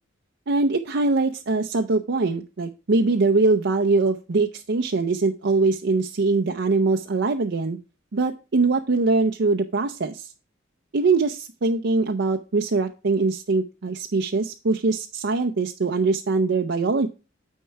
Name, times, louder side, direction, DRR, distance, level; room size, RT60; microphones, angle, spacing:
voice 1, 0.5-7.8 8.1-10.3 10.9-17.1, right 3 dB, 65° right, 5 dB, 0.6 m, -22 dB
9.4 x 4.5 x 4.5 m, 0.31 s
head